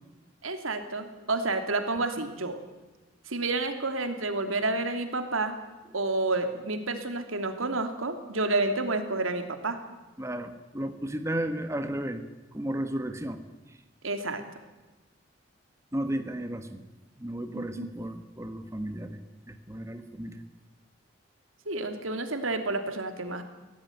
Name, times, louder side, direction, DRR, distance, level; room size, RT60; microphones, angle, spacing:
voice 1, 0.4-2.6 3.3-5.6 5.9-9.8 14.0-14.4 17.5-17.9 21.7-23.4, right 2 dB, 90° right, 7 dB, 2.9 m, -30 dB
voice 2, 10.2-12.2 12.5-13.4 13.7-13.8 15.9-16.8 17.2-19.2 19.5-20.4, right 1 dB, 15° right, 8 dB, 1.4 m, -34 dB
24.0 x 16.0 x 9.5 m, 1.2 s
head